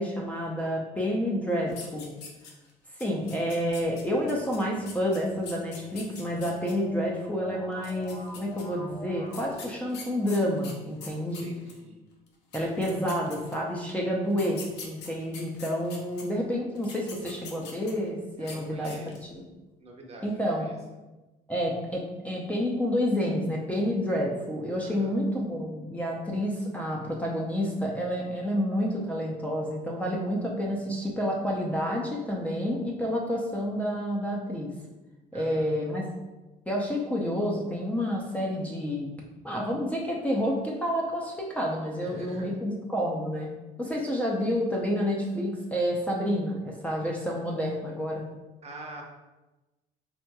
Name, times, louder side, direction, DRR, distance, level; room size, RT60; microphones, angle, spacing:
voice 1, 0.0-2.1 3.0-11.5 12.5-19.4 20.2-20.7 21.5-34.7 35.3-36.0 36.7-39.1 39.4-43.5 43.8-48.2, equal, 10° left, -3 dB, 0.5 m, -29 dB
sound 1, 1.7-2.7 3.0-6.7 7.7-8.6 9.3-11.8 12.3-12.4 12.5-13.7 14.3-16.2 16.8-18.1 18.4-18.6 18.8-19.3, left 5 dB, 85° left, 0.6 m, -44 dB
sound 2, 4.2-9.5, left 1 dB, 45° left, 1.3 m, -46 dB
voice 2, 11.4-12.0 18.4-19.4 19.8-20.8 24.8-25.1 35.3-35.7 42.0-42.5 48.6-49.0, right 2 dB, 40° right, 0 dB, 0.7 m, -45 dB
3.6 x 2.8 x 2.2 m, 1.1 s
cardioid pair, 110°, 17 cm